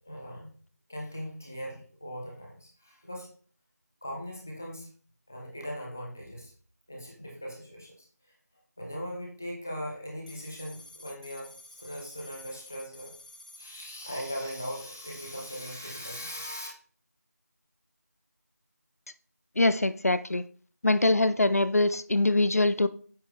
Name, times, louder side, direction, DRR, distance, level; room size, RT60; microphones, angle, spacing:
voice 1, 0.1-0.6 0.9-3.3 4.0-4.9 5.3-6.5 6.9-8.3 8.8-13.2 13.6-16.7, equal, 10° left, -2 dB, 0.5 m, -39 dB
sound 1, 10.3-15.8, left 2 dB, 30° left, 0.9 m, -50 dB
voice 2, 19.6-20.4 20.8-22.9, left 2 dB, 60° left, 14 dB, 0.6 m, -23 dB
8.9 x 5.5 x 3.0 m, 0.43 s
figure-of-eight pair, 175°, 9 cm